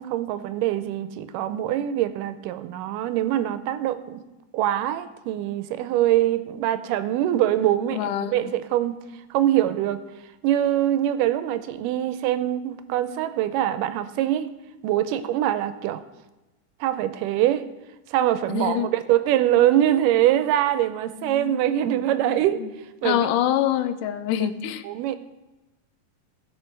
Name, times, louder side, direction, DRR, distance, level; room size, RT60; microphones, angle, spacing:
voice 1, 0.0-4.2 4.5-9.0 9.3-10.0 10.4-14.5 14.8-16.0 16.8-17.7 18.1-22.6 23.0-23.3 24.8-25.2, right 12 dB, 85° right, 11 dB, 2.2 m, -23 dB
voice 2, 7.9-8.5 18.5-18.9 21.2-22.7 23.0-24.9, left 11 dB, 85° left, 10 dB, 2.2 m, -26 dB
17.0 x 5.8 x 4.5 m, 1.0 s
omnidirectional pair, 3.7 m